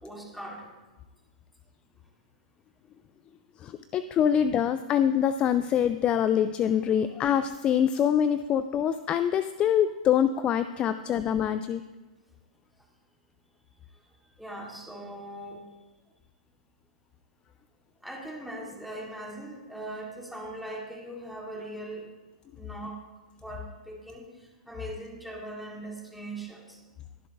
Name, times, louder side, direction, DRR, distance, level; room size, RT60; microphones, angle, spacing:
voice 1, 0.0-0.7 14.4-15.7 18.0-22.1 22.6-23.0 23.4-24.2 24.7-26.8, right 1 dB, ahead, -2 dB, 2.0 m, -40 dB
voice 2, 3.6-11.8, left 9 dB, 25° left, 12 dB, 0.3 m, -25 dB
21.0 x 7.5 x 2.6 m, 1.2 s
hypercardioid pair, 125°, 4 cm